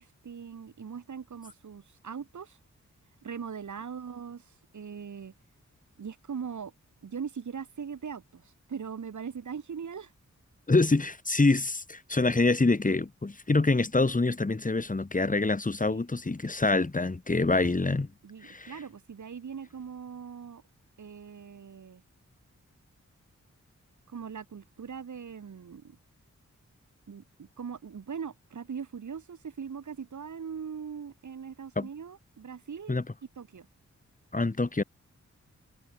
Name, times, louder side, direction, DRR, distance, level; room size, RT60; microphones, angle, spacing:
voice 1, 0.0-2.6 3.2-5.3 6.0-6.7 7.0-10.1 15.8-16.0 17.4-17.7 18.2-20.6 21.0-22.0 24.1-26.0 27.1-33.0 33.4-33.7, right 6 dB, 80° right, 4.9 m, -40 dB
voice 2, 10.7-18.1 18.4-18.7 31.8-31.9 32.9-33.0 34.3-34.8, left 3 dB, 25° left, 3.7 m, -26 dB
wide cardioid pair, 105°, 29 cm